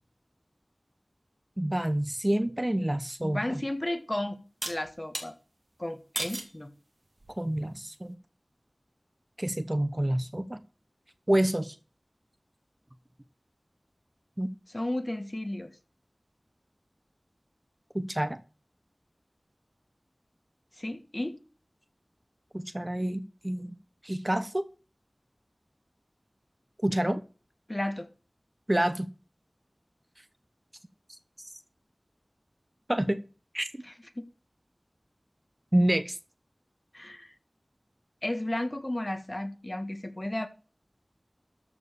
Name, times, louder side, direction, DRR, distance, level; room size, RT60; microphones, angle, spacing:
voice 1, 1.6-3.4 7.4-8.2 9.4-10.6 11.3-11.7 14.4-14.5 17.9-18.4 22.5-23.7 24.0-24.6 26.8-27.2 28.7-29.1 31.4-31.5 32.9-33.2 33.5-33.8 35.7-36.2, right 1 dB, 25° right, 1.0 m, -28 dB
voice 2, 3.2-4.4 4.7-5.4 5.8-6.7 14.7-15.7 20.8-21.4 27.7-28.1 33.8-34.2 36.9-37.3 38.2-40.5, left 1 dB, 35° left, 1.6 m, -33 dB
sound 1, 3.2-3.3 4.6-5.3 6.2-6.6 7.2-7.6, right 2 dB, 65° right, 2.4 m, -35 dB
13.5 x 4.9 x 6.8 m
wide cardioid pair, 45°, 0 cm